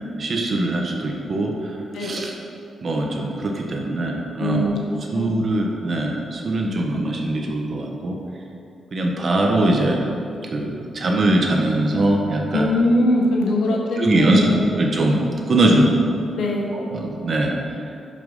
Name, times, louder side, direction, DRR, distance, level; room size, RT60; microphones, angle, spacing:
voice 1, 0.0-1.7 2.0-2.3 2.8-4.8 5.1-8.2 8.9-10.0 10.5-12.7 13.7-16.0 16.7-17.7, right 1 dB, 40° right, 0 dB, 1.4 m, -21 dB
voice 2, 1.9-2.2 4.4-4.8 5.1-5.3 12.5-14.6 16.4-16.8, left 1 dB, 75° left, 0 dB, 1.7 m, -21 dB
11.5 x 5.8 x 5.6 m, 2.6 s
wide cardioid pair, 140°, 0 cm